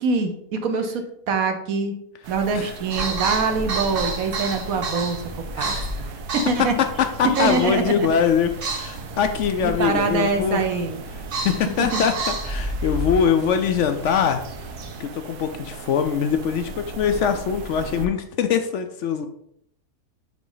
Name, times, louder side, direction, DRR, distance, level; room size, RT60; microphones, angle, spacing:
voice 1, 0.0-1.9 2.3-5.2 5.6-6.7 7.4-8.1 9.6-11.0 11.8-12.0, right 4 dB, 65° right, 6 dB, 1.2 m, -24 dB
sound 1, 2.2-18.1, right 4 dB, 80° right, 1.2 m, -38 dB
sound 2, 2.9-15.0, right 2 dB, 45° right, 0.9 m, -31 dB
voice 2, 5.6-5.9 6.8-10.6 11.4-14.4 15.0-19.3, left 7 dB, 70° left, 7 dB, 0.7 m, -23 dB
6.0 x 4.2 x 3.9 m, 0.72 s
omnidirectional pair, 1.7 m